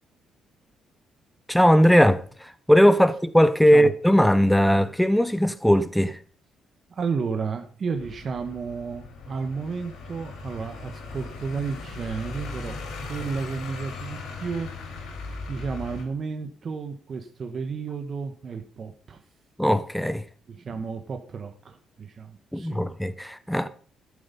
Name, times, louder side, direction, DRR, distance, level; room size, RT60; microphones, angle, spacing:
voice 1, 1.5-6.2 19.6-20.2 22.5-23.7, equal, 5° left, 1.1 m, -19 dB
voice 2, 6.9-12.7 13.1-15.0 15.5-19.2 20.5-22.8, right 5 dB, 45° right, 1.3 m, -32 dB
sound 1, 8.0-16.0, left 3 dB, 80° left, 4.7 m, -38 dB
12.0 x 8.4 x 5.4 m
cardioid pair, 90°, 0 cm